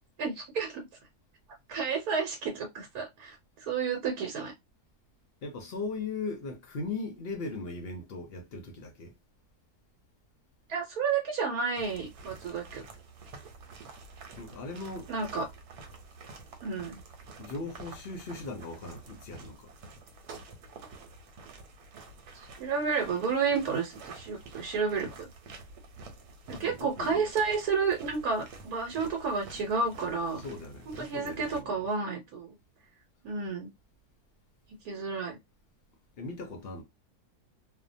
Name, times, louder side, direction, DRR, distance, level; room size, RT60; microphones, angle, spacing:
voice 1, 0.2-0.8 1.7-4.5 10.7-12.8 15.1-15.4 16.6-17.0 22.6-25.3 26.5-30.4 30.9-32.5 33.2-33.7 34.8-35.4, right 5 dB, 75° right, 1.2 m, -31 dB
voice 2, 5.4-9.1 14.4-15.1 17.4-19.7 26.5-27.3 30.4-31.9 36.2-36.8, left 3 dB, 60° left, 0.6 m, -39 dB
sound 1, 11.7-31.6, right 3 dB, 90° right, 1.2 m, -49 dB
2.7 x 2.1 x 2.5 m
omnidirectional pair, 1.6 m